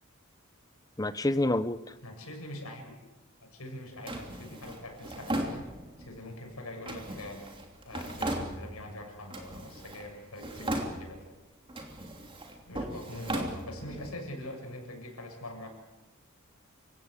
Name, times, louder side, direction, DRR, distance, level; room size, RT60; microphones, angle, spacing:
voice 1, 1.0-1.9, left 1 dB, 15° left, 13 dB, 0.8 m, -28 dB
voice 2, 2.0-3.0 3.4-5.7 6.0-7.4 7.8-11.2 12.7-15.7, left 1 dB, 85° left, 2 dB, 7.6 m, -43 dB
Drawer open or close, 4.1-6.1 6.9-8.9 9.3-10.1 10.4-11.3 11.7-14.1, right 1 dB, 25° right, 3.0 m, -37 dB
28.0 x 16.5 x 8.3 m, 1.1 s
head